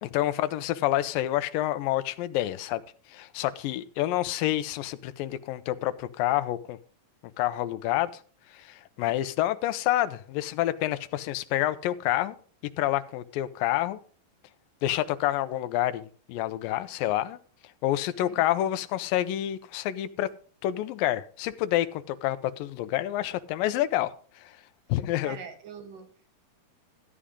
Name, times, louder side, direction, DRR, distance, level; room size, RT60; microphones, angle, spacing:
voice 1, 0.0-2.8 3.1-6.8 7.4-8.1 8.5-12.4 12.8-14.0 14.8-17.4 17.8-20.3 20.6-24.5 24.9-25.4, left 14 dB, 80° left, 2.4 m, -28 dB
voice 2, 18.2-18.5 25.2-26.3, right 7 dB, 70° right, 3.4 m, -44 dB
14.0 x 9.9 x 3.7 m
omnidirectional pair, 4.1 m